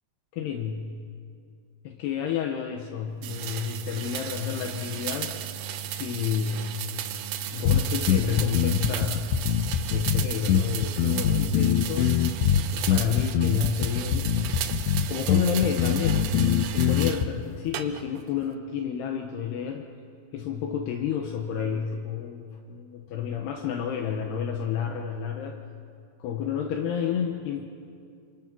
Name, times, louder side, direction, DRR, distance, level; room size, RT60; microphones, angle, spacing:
voice 1, 0.3-1.0 1.8-5.3 6.0-6.7 7.5-9.3 9.9-12.2 12.6-14.3 15.1-16.4 16.7-19.8 20.3-25.6 26.2-27.7, left 8 dB, 75° left, 3 dB, 3.0 m, -30 dB
sound 1, 3.2-17.3 17.7-18.3, right 9 dB, 75° right, 2.1 m, -35 dB
sound 2, 7.7-17.3, left 8 dB, 90° left, 3.2 m, -24 dB
28.0 x 26.5 x 6.1 m, 2.4 s
omnidirectional pair, 5.1 m